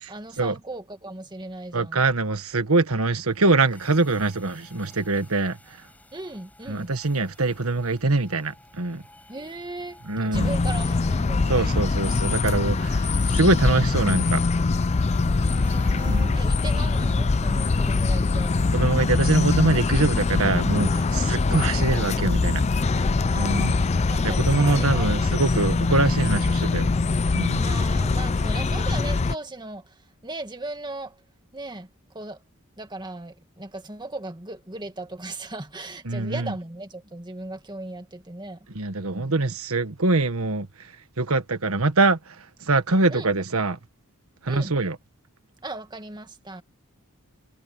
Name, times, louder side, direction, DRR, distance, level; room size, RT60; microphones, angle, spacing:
voice 1, 0.1-2.0 6.1-6.9 9.3-11.8 15.3-18.6 23.3-25.2 27.5-31.2 31.5-32.4 32.8-38.7 39.1-39.3 43.1-43.3 44.5-44.7 45.6-46.6, right 2 dB, 20° right, 1.9 m, -37 dB
voice 2, 1.7-5.6 6.7-9.0 10.1-10.6 11.5-14.4 16.1-16.4 18.7-22.6 23.4-23.7 24.2-26.9 27.3-27.6 36.0-36.5 38.7-40.7 41.2-43.8 44.4-45.0, right 3 dB, 75° right, 1.5 m, -23 dB
sound 1, 3.2-21.1, left 1 dB, 5° left, 7.8 m, -53 dB
sound 2, 10.3-29.3, left 3 dB, 30° left, 0.4 m, -23 dB
head